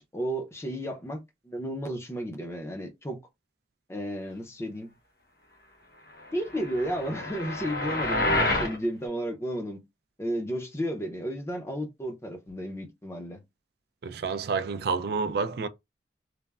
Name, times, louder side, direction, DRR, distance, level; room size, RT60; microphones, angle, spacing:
voice 1, 0.0-3.2 3.9-4.9 6.3-9.8 10.2-13.4, equal, 15° left, 0.6 m, -33 dB
sound 1, 6.5-8.8, left 2 dB, 60° left, 1.0 m, -28 dB
voice 2, 14.0-15.7, right 5 dB, 60° right, 0.4 m, -29 dB
3.2 x 2.1 x 2.3 m
head